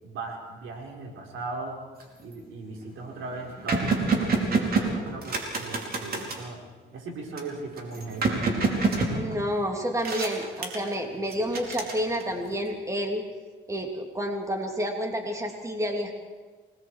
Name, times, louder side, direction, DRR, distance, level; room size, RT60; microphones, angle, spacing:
voice 1, 0.0-1.8 2.2-6.6 6.9-8.6, right 3 dB, 80° right, 1 dB, 4.8 m, -38 dB
sound 1, 2.0-2.3 2.8-2.9 3.1-6.5 7.4-9.7 10.0-10.9 11.3-12.5, right 3 dB, 50° right, 4.7 m, -27 dB
voice 2, 9.1-13.2 13.7-16.2, equal, 15° right, 2 dB, 3.1 m, -29 dB
28.5 x 20.5 x 4.9 m, 1.4 s
cardioid pair, 90°, 20 cm